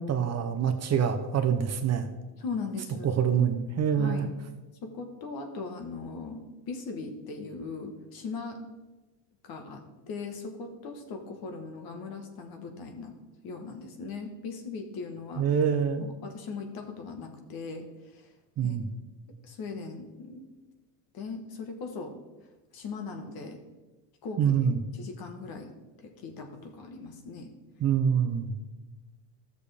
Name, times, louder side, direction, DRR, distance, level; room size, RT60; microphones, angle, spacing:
voice 1, 0.1-2.1 3.0-4.3 15.4-16.1 18.6-18.8 24.4-24.8 27.8-28.5, right 7 dB, 35° right, 7 dB, 0.8 m, -25 dB
voice 2, 2.4-3.1 4.0-4.3 4.8-8.6 9.4-13.1 13.4-15.5 16.0-18.3 18.6-18.8 19.4-20.5 21.1-22.2 22.7-23.6 24.2-24.6 24.9-25.7 26.0-27.5, left 4 dB, 50° left, 5 dB, 1.5 m, -39 dB
13.0 x 6.8 x 3.5 m, 1.2 s
cardioid pair, 120°, 46 cm